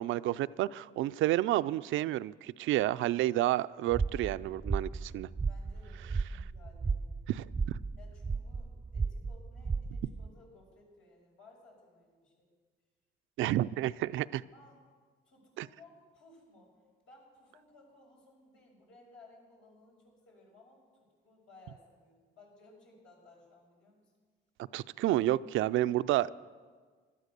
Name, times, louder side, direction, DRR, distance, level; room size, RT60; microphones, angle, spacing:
voice 1, 0.0-5.3 7.3-7.4 13.4-14.4 15.6-15.7 24.7-26.3, right 14 dB, 80° right, 15 dB, 0.4 m, -30 dB
sound 1, 3.9-10.3, right 4 dB, 20° right, 0.6 m, -35 dB
voice 2, 5.5-7.3 8.0-12.5 14.5-14.8 15.2-24.1, left 2 dB, 75° left, -2 dB, 6.3 m, -59 dB
16.5 x 12.0 x 6.7 m, 1.5 s
cardioid pair, 90°, 20 cm